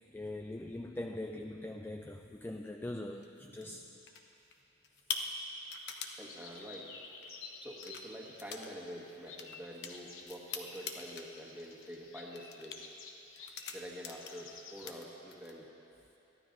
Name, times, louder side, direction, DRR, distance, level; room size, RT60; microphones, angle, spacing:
voice 1, 0.1-3.9, left 1 dB, 10° left, 4 dB, 0.3 m, -42 dB
sound 1, 3.2-3.7 4.1-4.5 4.8-6.2 7.2-7.3 7.7-8.1 8.4-8.7 9.0-11.3 11.6-12.0 12.4-12.8 13.4-14.5 14.8-15.6, left 5 dB, 55° left, 0.9 m, -43 dB
voice 2, 3.4-3.9 6.2-6.9 7.6-12.8 13.7-15.7, equal, 10° right, -3 dB, 1.6 m, -47 dB
sound 2, 6.3-14.9, left 4 dB, 80° left, 1.1 m, -53 dB
22.5 x 14.5 x 2.7 m, 2.9 s
head